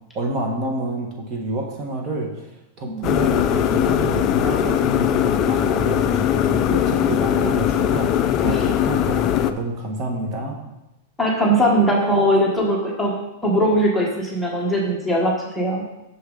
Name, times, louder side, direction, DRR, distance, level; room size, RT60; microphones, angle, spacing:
voice 1, 0.1-2.5 2.8-10.6, right 2 dB, 30° right, 0 dB, 1.3 m, -28 dB
sound 1, 3.0-9.5, left 10 dB, 35° left, 0.4 m, -20 dB
voice 2, 11.2-13.1 13.4-15.8, equal, 5° left, -3 dB, 1.3 m, -20 dB
6.6 x 6.2 x 3.9 m, 0.93 s
supercardioid pair, 140°, 0 cm